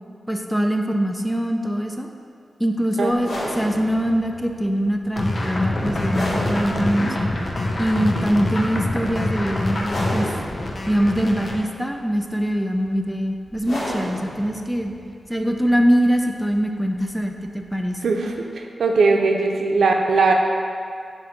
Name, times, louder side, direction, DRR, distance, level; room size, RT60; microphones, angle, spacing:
voice 1, 0.3-2.1 2.6-7.2 7.8-10.3 10.9-14.9 15.3-18.0, equal, ahead, 3 dB, 0.4 m, -23 dB
sound 1, 3.1-18.4, left 1 dB, 65° left, 1.3 m, -35 dB
sound 2, 5.2-11.6, left 1 dB, 40° left, 0.7 m, -25 dB
voice 2, 18.0-20.3, right 4 dB, 85° right, 2 dB, 0.5 m, -19 dB
7.6 x 2.6 x 5.8 m, 2.4 s
wide cardioid pair, 120°, 0 cm